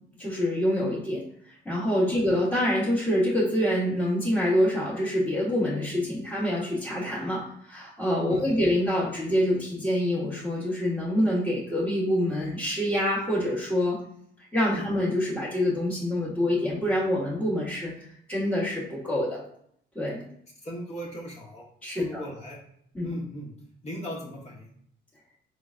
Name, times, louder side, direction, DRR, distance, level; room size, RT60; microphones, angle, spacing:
voice 1, 0.2-1.2 1.6-14.0 14.4-17.9 18.3-19.4 19.9-20.2 21.8-22.2 22.9-23.1, left 1 dB, 5° left, -9 dB, 1.2 m, -26 dB
voice 2, 20.6-21.6 21.9-22.6 23.0-23.5 23.8-24.7, equal, 35° left, -3 dB, 1.1 m, -37 dB
3.8 x 3.3 x 2.4 m, 0.69 s
cardioid pair, 90°, 20 cm